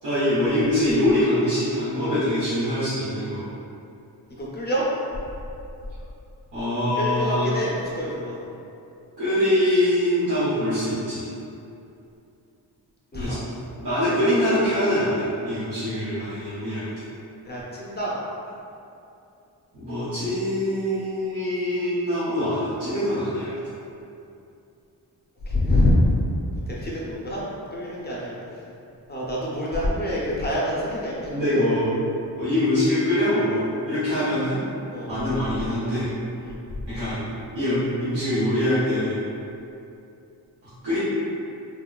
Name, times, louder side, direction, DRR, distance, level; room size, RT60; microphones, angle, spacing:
voice 1, 0.0-3.6 6.5-7.5 9.2-11.2 13.1-13.4 13.8-16.9 19.7-23.5 31.3-31.9 32.3-34.6 35.1-36.1 36.9-37.2 37.5-39.2 40.8-41.0, left 1 dB, 80° right, -14 dB, 1.0 m, -23 dB
voice 2, 4.4-4.8 6.9-8.5 13.1-13.4 17.4-18.1 25.4-26.2 26.5-27.4 27.7-28.4 29.1-31.6 34.9-35.1 36.4-36.8, left 1 dB, 25° left, -6 dB, 0.4 m, -26 dB
3.5 x 2.2 x 2.2 m, 2.7 s
wide cardioid pair, 180°, 40 cm